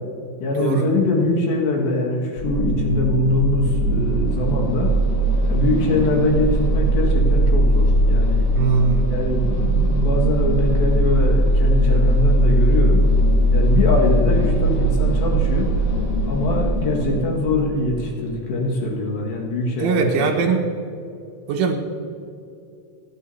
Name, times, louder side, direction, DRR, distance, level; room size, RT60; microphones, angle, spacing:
voice 1, 0.4-4.9 5.5-8.5 9.1-13.0 13.5-15.7 16.2-20.3, left 2 dB, 70° left, -1 dB, 3.8 m, -22 dB
sound 1, 2.4-18.3, right 1 dB, 35° left, 3.6 m, -19 dB
voice 2, 8.5-9.1 19.8-20.6 21.5-21.8, right 5 dB, 85° right, -1 dB, 3.7 m, -20 dB
29.5 x 10.5 x 2.8 m, 2.6 s
omnidirectional pair, 5.5 m